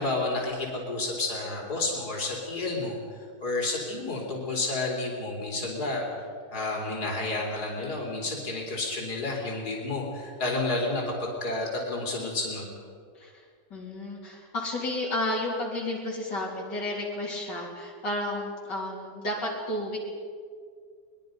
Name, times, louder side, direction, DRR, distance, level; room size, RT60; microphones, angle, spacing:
voice 1, 0.0-3.0 3.4-6.0 6.5-12.7, left 2 dB, 60° left, -2 dB, 4.3 m, -30 dB
voice 2, 13.7-20.0, left 1 dB, 80° left, -4 dB, 4.3 m, -32 dB
23.0 x 22.0 x 5.4 m, 2.1 s
omnidirectional pair, 1.9 m